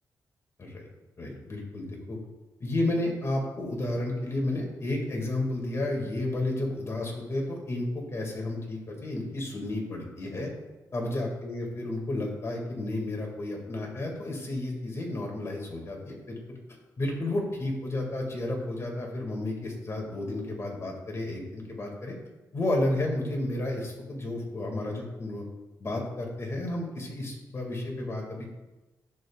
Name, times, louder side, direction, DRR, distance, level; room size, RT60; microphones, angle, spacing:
voice 1, 1.2-2.2 2.6-10.5 10.9-16.6 17.0-22.1 22.5-25.4 25.8-28.5, left 1 dB, 40° left, 1 dB, 2.0 m, -32 dB
10.5 x 6.8 x 2.3 m, 1.1 s
cardioid pair, 95°, 7 cm